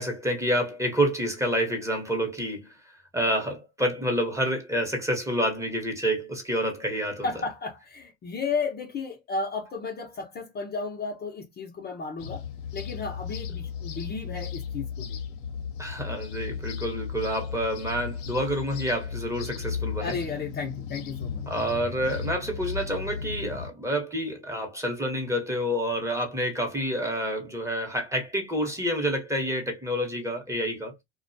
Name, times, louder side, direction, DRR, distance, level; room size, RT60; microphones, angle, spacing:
voice 1, 0.0-2.7 3.1-7.3 15.8-20.1 21.5-30.9, equal, 10° right, 0.9 m, -28 dB
voice 2, 7.2-12.4 12.7-15.2 20.0-21.4, left 4 dB, 30° left, 0.7 m, -33 dB
sound 1, 12.2-23.7, left 7 dB, 70° left, 0.8 m, -35 dB
2.4 x 2.2 x 2.6 m
supercardioid pair, 95°, 33 cm